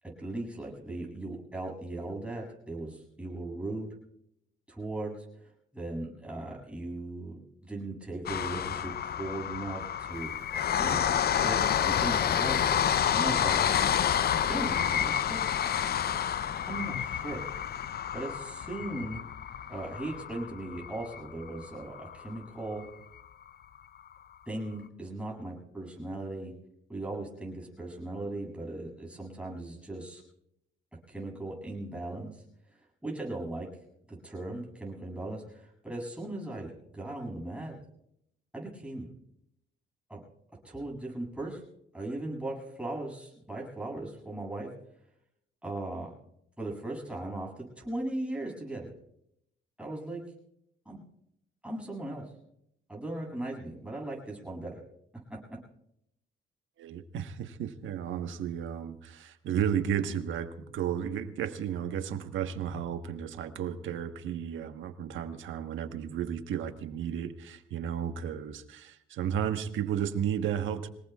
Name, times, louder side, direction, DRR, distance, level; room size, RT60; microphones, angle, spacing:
voice 1, 0.0-3.9 4.7-10.3 10.8-12.6 13.1-13.6 14.5-15.6 16.7-17.4 18.1-19.2 19.7-22.8 24.5-26.5 26.9-30.2 31.1-32.4 33.0-33.7 34.1-37.8 38.5-39.1 40.1-40.2 40.6-41.6 41.9-44.7 45.6-46.1 46.6-48.9 49.8-50.2 50.8-51.0 51.6-52.2 52.9-54.8 55.3-55.6, right 2 dB, 5° right, -2 dB, 7.9 m, -38 dB
sound 1, 8.3-22.4 22.8-22.9 23.2-23.3, left 9 dB, 50° left, 0.6 m, -29 dB
voice 2, 56.8-70.9, right 9 dB, 75° right, 8 dB, 1.3 m, -33 dB
26.0 x 19.0 x 2.4 m, 0.78 s
cardioid pair, 90°, 20 cm